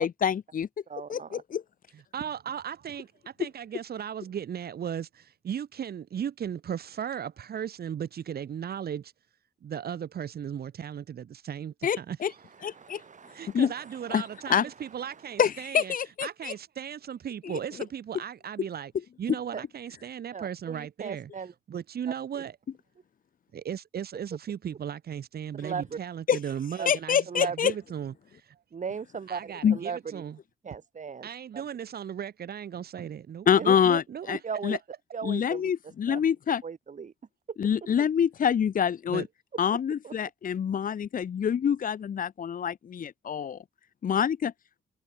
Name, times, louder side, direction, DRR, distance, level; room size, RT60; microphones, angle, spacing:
voice 1, 0.0-0.7 1.1-1.2 11.8-12.0 12.6-13.0 13.5-13.7 14.1-14.2 14.5-14.6 15.4-16.5 26.3-26.4 26.8-27.7 29.6-29.8 33.5-34.8 35.2-36.6 37.6-39.2 39.6-43.6 44.0-44.5, left 8 dB, 55° left, 1.3 m, -26 dB
voice 2, 0.9-1.4 12.7-14.7 15.1-15.4 19.5-19.6 20.3-21.5 22.1-22.4 25.6-26.0 26.8-26.9 27.3-27.6 28.7-30.2 30.6-31.6 33.6-33.7 34.3-34.7 35.1-36.2 36.6-37.1 37.5-37.6 40.0-40.1, right 6 dB, 45° right, 4.6 m, -38 dB
voice 3, 1.9-3.1 3.4-9.1 9.6-12.2 13.4-15.9 16.2-18.9 19.2-21.3 21.7-22.6 23.5-28.4 29.3-30.4 31.2-34.3 39.1-39.2, right 8 dB, 70° right, 7.9 m, -36 dB
cardioid pair, 85°, 17 cm